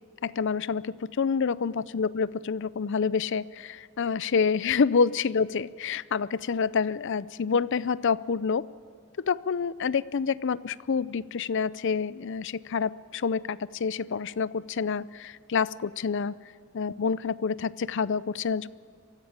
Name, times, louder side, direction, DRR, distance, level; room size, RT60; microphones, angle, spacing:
voice 1, 0.2-8.7 9.2-16.3 16.7-18.7, left 5 dB, 60° left, 18 dB, 0.5 m, -28 dB
23.5 x 15.5 x 8.8 m, 2.3 s
head